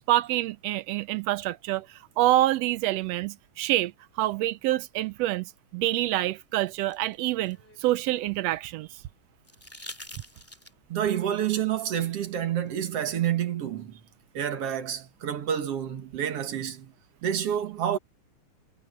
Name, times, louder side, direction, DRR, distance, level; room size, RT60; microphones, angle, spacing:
voice 1, 0.0-1.9 2.2-3.9 4.2-8.9, right 15 dB, 75° right, 1.6 m, -26 dB
sound 1, 6.3-8.5 9.4-11.0 12.7-12.8, left 1 dB, 5° left, 2.1 m, -47 dB
voice 2, 10.9-14.0 14.3-16.9 17.2-18.0, right 10 dB, 60° right, 2.3 m, -28 dB
omnidirectional pair, 3.3 m